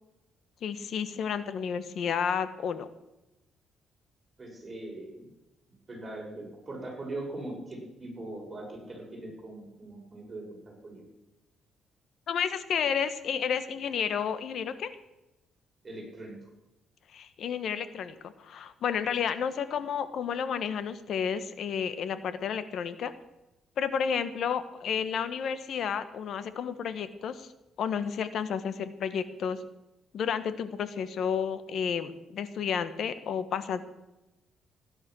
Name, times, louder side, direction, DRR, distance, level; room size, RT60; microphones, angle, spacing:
voice 1, 0.6-2.9 12.3-14.9 17.1-23.1 23.8-27.5 27.8-29.6 30.1-33.8, left 7 dB, 65° left, 12 dB, 1.3 m, -31 dB
voice 2, 4.4-5.3 5.9-11.0 15.8-16.5, right 2 dB, 25° right, -1 dB, 6.6 m, -41 dB
16.5 x 10.5 x 6.3 m, 0.97 s
cardioid pair, 90°, 0 cm